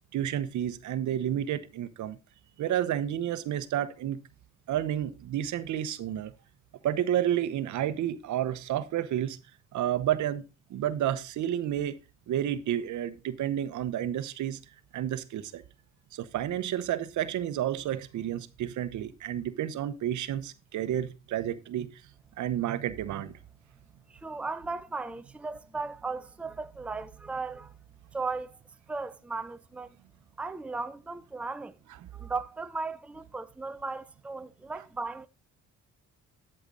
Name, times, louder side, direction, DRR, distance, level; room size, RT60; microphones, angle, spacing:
voice 1, 0.1-2.2 2.6-4.2 4.7-6.3 6.8-9.4 9.7-10.4 10.7-12.0 12.3-14.6 14.9-15.6 16.1-22.0 22.4-23.4, right 11 dB, 75° right, 0.9 m, -30 dB
voice 2, 24.1-27.7 28.1-28.6 28.9-29.9 30.4-31.8 32.1-35.3, right 3 dB, 5° right, 0.5 m, -36 dB
11.5 x 6.7 x 3.9 m
cardioid pair, 90°, 30 cm